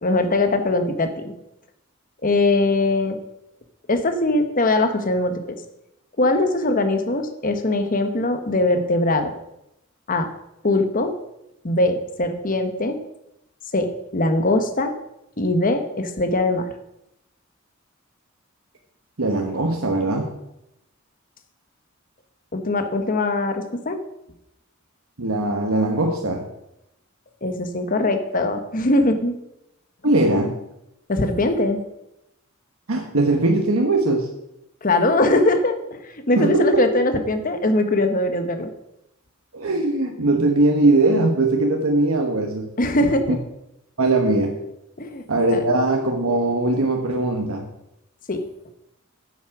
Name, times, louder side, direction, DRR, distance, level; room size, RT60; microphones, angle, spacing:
voice 1, 0.0-1.1 2.2-3.2 3.9-5.6 6.2-9.3 10.1-10.3 10.6-11.1 11.6-13.0 13.7-14.9 15.4-16.7 22.5-24.0 27.4-29.3 31.1-31.8 34.8-36.0 36.3-38.7 42.8-43.4 45.0-45.2 45.5-45.6 48.3-48.4, left 2 dB, 40° left, 7 dB, 1.1 m, -21 dB
voice 2, 19.2-20.4 25.2-26.5 30.0-30.6 32.9-34.3 36.3-36.9 39.5-42.7 43.0-43.4 44.0-44.6 45.3-47.7, right 2 dB, 90° right, 2 dB, 1.3 m, -20 dB
9.7 x 8.3 x 6.0 m, 0.85 s
head